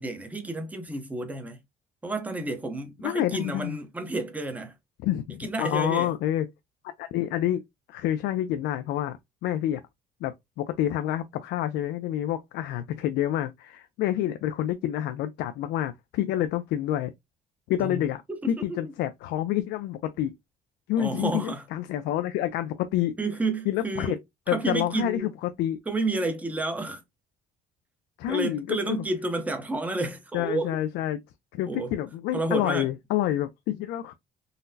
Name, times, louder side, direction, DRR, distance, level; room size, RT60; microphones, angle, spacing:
voice 1, 0.0-1.6 2.0-4.7 5.4-6.1 17.8-18.7 21.0-21.6 23.2-24.2 24.5-25.3 25.9-27.0 28.3-30.8 31.7-31.9 32.3-32.9, right 2 dB, 10° right, 0.7 m, -30 dB
voice 2, 3.0-3.8 5.0-6.5 6.8-7.6 7.9-9.8 10.2-17.1 17.7-18.2 18.5-20.3 20.9-23.2 23.7-24.2 24.5-25.8 28.2-29.0 30.3-31.2 31.5-34.1, left 12 dB, 80° left, 0.4 m, -28 dB
3.9 x 2.0 x 2.6 m
cardioid pair, 110°, 17 cm